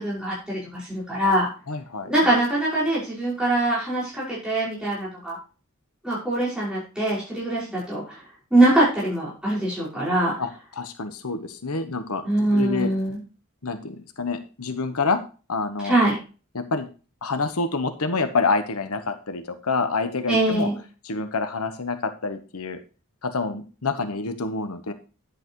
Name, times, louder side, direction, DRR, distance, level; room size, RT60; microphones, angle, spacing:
voice 1, 0.0-1.5 2.0-5.4 6.0-8.2 8.5-10.4 12.2-13.2 15.8-16.2 20.3-20.7, right 1 dB, 5° right, -8 dB, 5.6 m, -23 dB
voice 2, 1.7-2.1 10.4-12.2 12.5-12.9 13.6-15.2 15.5-16.0 16.5-16.9 17.2-20.7 21.0-22.8 23.2-24.9, left 3 dB, 85° left, 8 dB, 1.1 m, -27 dB
10.5 x 8.3 x 3.1 m, 0.34 s
head